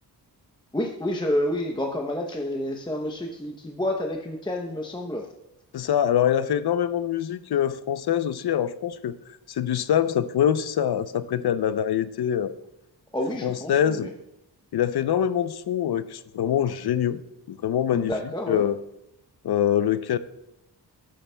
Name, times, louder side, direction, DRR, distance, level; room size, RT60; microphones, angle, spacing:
voice 1, 0.7-5.3 13.1-14.1 17.9-18.6, left 1 dB, 10° left, 1 dB, 0.7 m, -29 dB
voice 2, 5.7-9.2 9.5-12.5 13.4-14.1 14.7-17.2 17.5-18.1 18.5-18.8 19.4-20.2, left 9 dB, 65° left, 14 dB, 0.6 m, -24 dB
13.5 x 11.5 x 2.2 m, 0.85 s
wide cardioid pair, 135°, 41 cm